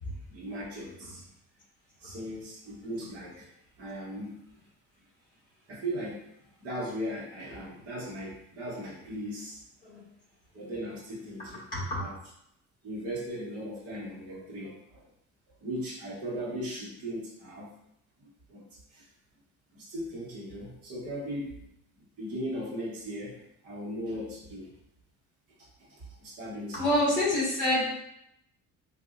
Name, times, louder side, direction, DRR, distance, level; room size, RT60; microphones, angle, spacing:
voice 1, 0.3-1.2 2.0-3.5 3.8-4.4 5.7-6.2 6.6-9.6 10.5-11.7 11.9-12.1 12.8-15.1 15.6-17.7 18.2-19.1 19.7-21.5 22.2-24.8 25.6-26.9, equal, 45° right, -7 dB, 1.2 m, -38 dB
voice 2, 26.7-27.9, left 1 dB, 25° left, -7 dB, 1.5 m, -27 dB
3.9 x 2.6 x 2.5 m, 0.78 s
cardioid pair, 175°, 32 cm